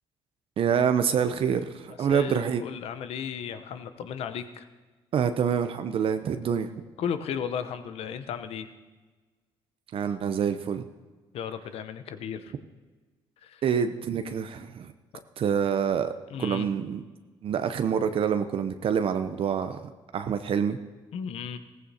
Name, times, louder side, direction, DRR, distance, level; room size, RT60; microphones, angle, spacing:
voice 1, 0.6-2.6 5.1-6.7 9.9-10.8 13.6-14.9 15.4-16.1 16.4-17.0 17.4-19.8 20.1-20.8, right 7 dB, 60° right, 9 dB, 0.6 m, -26 dB
voice 2, 2.0-4.7 7.0-8.7 11.3-12.5 13.4-13.6 16.3-16.7 21.1-21.6, left 7 dB, 75° left, 10 dB, 0.8 m, -35 dB
16.0 x 15.0 x 2.8 m, 1.3 s
supercardioid pair, 60°, 11 cm